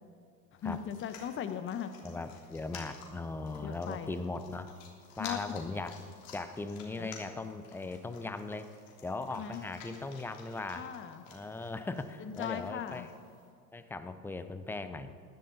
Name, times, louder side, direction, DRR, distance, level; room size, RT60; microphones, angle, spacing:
sound 1, 0.6-13.5, left 5 dB, 55° left, 3.3 m, -53 dB
voice 1, 0.6-1.9 3.6-4.2 5.2-5.4 7.0-7.1 9.3-9.6 10.7-11.3 12.2-13.1, left 9 dB, 25° left, 10 dB, 1.1 m, -38 dB
voice 2, 2.0-4.7 5.2-5.9 6.3-8.7 9.0-10.9 11.3-13.1 13.7-15.1, left 3 dB, 5° left, 10 dB, 0.5 m, -39 dB
18.5 x 12.0 x 4.1 m, 2.3 s
hypercardioid pair, 100°, 46 cm